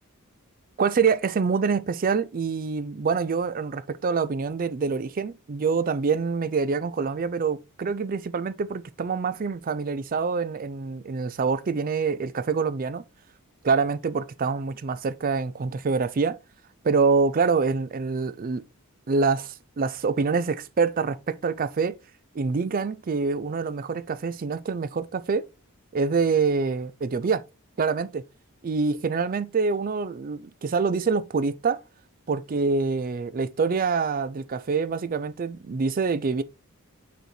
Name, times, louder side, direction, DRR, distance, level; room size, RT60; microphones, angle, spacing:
voice 1, 0.8-13.0 13.6-16.4 16.8-18.6 19.1-21.9 22.3-25.4 25.9-27.4 27.8-28.2 28.6-31.8 32.3-36.4, right 5 dB, 40° right, 0.4 m, -25 dB
5.5 x 4.3 x 4.4 m
head